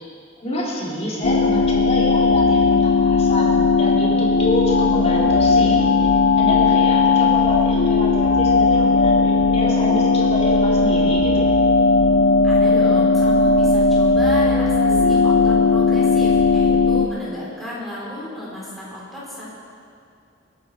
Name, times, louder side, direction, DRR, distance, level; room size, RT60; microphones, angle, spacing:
voice 1, 0.4-5.9 6.4-11.4, equal, 35° left, -6 dB, 3.6 m, -27 dB
sound 1, 1.2-17.1, left 3 dB, 70° left, 0.7 m, -17 dB
voice 2, 12.4-19.5, left 1 dB, ahead, -8 dB, 4.5 m, -33 dB
21.5 x 11.5 x 4.7 m, 2.4 s
head